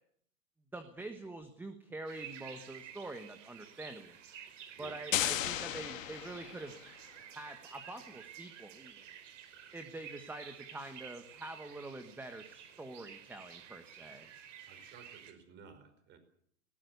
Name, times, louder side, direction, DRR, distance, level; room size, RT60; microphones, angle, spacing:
voice 1, 0.7-4.2 4.8-6.8 7.3-9.0 9.7-14.3, right 2 dB, 5° right, 8 dB, 1.3 m, -46 dB
sound 1, 2.1-15.3, right 9 dB, 60° right, 4.5 m, -52 dB
sound 2, 5.1-6.9, left 12 dB, 70° left, 1.9 m, -35 dB
voice 2, 14.7-16.2, right 6 dB, 25° right, 10 dB, 5.0 m, -55 dB
20.0 x 18.5 x 8.1 m, 0.64 s
hypercardioid pair, 145°, 41 cm